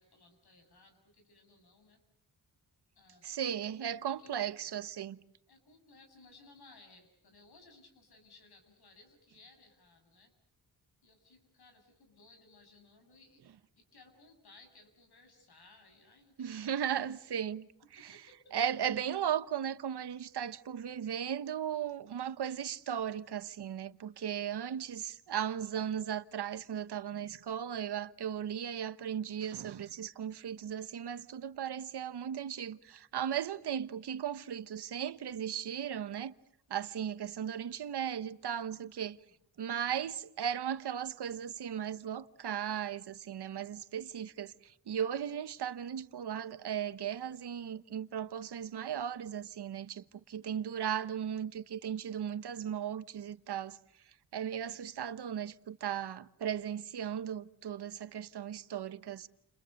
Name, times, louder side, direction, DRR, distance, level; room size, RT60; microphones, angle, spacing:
voice 1, 0.0-2.0 3.0-4.5 5.5-10.3 11.0-13.5 13.8-16.9 18.0-18.5 39.2-39.3, left 3 dB, 75° left, 7.3 m, -60 dB
voice 2, 3.2-5.2 16.4-18.2 18.5-36.3 36.7-39.2 39.6-53.8 54.3-59.3, right 9 dB, 90° right, 1.1 m, -36 dB
30.0 x 29.5 x 6.6 m
wide cardioid pair, 155°, 39 cm